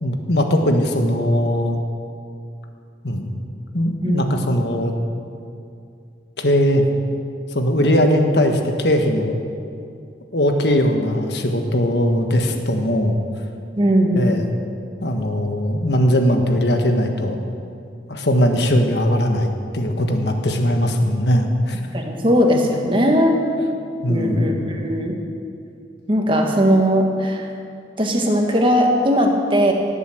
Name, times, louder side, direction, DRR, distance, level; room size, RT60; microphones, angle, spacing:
voice 1, 0.0-1.8 3.0-3.4 3.7-4.9 6.4-6.8 7.5-9.4 10.3-13.2 14.1-14.4 15.0-17.4 18.1-21.8 24.0-24.7, equal, 65° left, 4 dB, 1.5 m, -19 dB
voice 2, 13.8-14.4 21.9-23.4 24.1-25.2 26.1-27.5 28.0-29.7, equal, 30° right, 1 dB, 1.7 m, -18 dB
17.5 x 8.3 x 7.9 m, 2.5 s
head